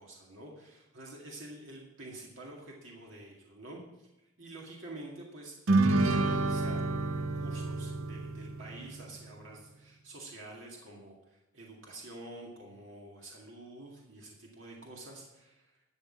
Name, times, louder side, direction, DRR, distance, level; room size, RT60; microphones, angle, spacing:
voice 1, 0.0-4.1 4.4-5.6 6.1-15.8, right 2 dB, 65° right, -1 dB, 2.0 m, -48 dB
sound 1, 5.7-9.3, right 2 dB, 90° right, 0.8 m, -29 dB
11.5 x 6.5 x 7.5 m, 0.95 s
head